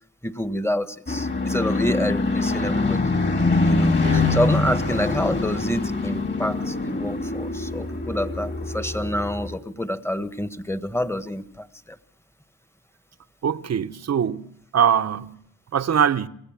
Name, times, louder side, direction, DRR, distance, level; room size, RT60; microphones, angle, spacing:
voice 1, 0.2-3.0 3.6-11.7, left 1 dB, 10° left, 1.5 m, -27 dB
sound 1, 1.1-9.6, left 2 dB, 35° left, 3.7 m, -24 dB
voice 2, 4.0-4.3 13.4-14.5 14.7-15.3 15.7-16.3, right 8 dB, 55° right, 1.0 m, -22 dB
27.0 x 17.0 x 7.5 m
cardioid pair, 75°, 31 cm